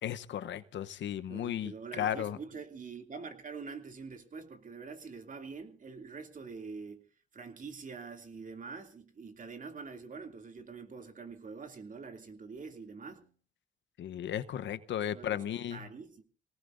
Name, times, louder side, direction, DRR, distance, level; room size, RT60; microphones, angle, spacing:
voice 1, 0.0-2.4 14.0-15.8, left 10 dB, 65° left, 12 dB, 0.9 m, -35 dB
voice 2, 1.3-7.0 7.3-13.3 15.1-15.5 15.7-16.3, right 5 dB, 40° right, 5 dB, 2.7 m, -45 dB
25.5 x 18.5 x 2.6 m, 0.38 s
cardioid pair, 90°, 20 cm